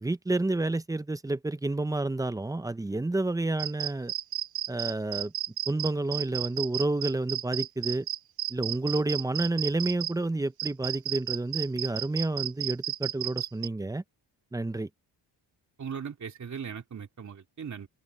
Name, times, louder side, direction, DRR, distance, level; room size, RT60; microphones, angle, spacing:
voice 1, 0.0-4.1 4.7-5.3 5.7-8.1 8.5-14.0 14.5-14.9, right 2 dB, 10° right, 0.6 m, -29 dB
sound 1, 3.6-10.1 10.6-13.7, right 13 dB, 55° right, 0.6 m, -32 dB
voice 2, 15.8-17.9, right 7 dB, 40° right, 2.9 m, -38 dB
cardioid pair, 135°, 45 cm